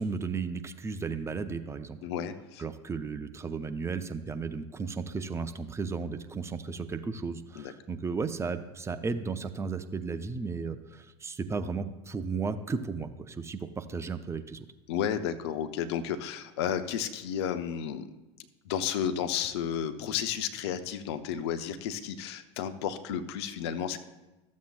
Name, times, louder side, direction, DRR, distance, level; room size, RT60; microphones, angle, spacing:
voice 1, 0.0-2.0 2.6-14.7, right 4 dB, 20° right, 9 dB, 0.6 m, -34 dB
voice 2, 2.0-2.6 7.6-7.7 14.9-18.1 18.7-24.0, left 9 dB, 65° left, 10 dB, 0.7 m, -32 dB
14.0 x 7.3 x 2.4 m, 1.1 s
figure-of-eight pair, 75°, 15 cm